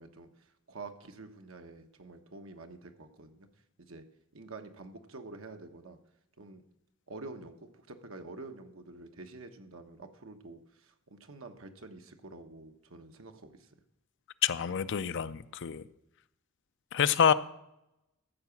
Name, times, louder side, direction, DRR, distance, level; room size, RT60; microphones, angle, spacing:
voice 1, 0.0-3.5 3.8-4.0 4.3-6.0 6.4-6.6 7.1-13.7, right 3 dB, 70° right, 6 dB, 1.1 m, -48 dB
voice 2, 14.4-15.8 16.9-17.3, left 8 dB, 60° left, 14 dB, 0.5 m, -27 dB
14.0 x 4.8 x 7.0 m, 0.84 s
head